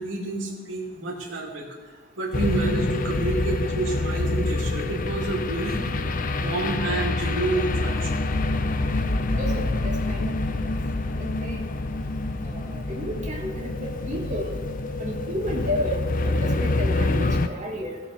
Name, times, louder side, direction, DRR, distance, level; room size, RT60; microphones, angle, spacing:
voice 1, 0.0-1.7 2.2-5.8 6.3-8.2, right 2 dB, 80° right, -3 dB, 2.6 m, -29 dB
sound 1, 2.3-17.5, left 2 dB, 45° left, 0.6 m, -26 dB
voice 2, 9.4-10.5 11.2-11.6 12.4-13.7 14.1-14.6 15.0-18.0, equal, 40° right, -2 dB, 2.0 m, -32 dB
16.5 x 7.0 x 4.4 m, 1.5 s
head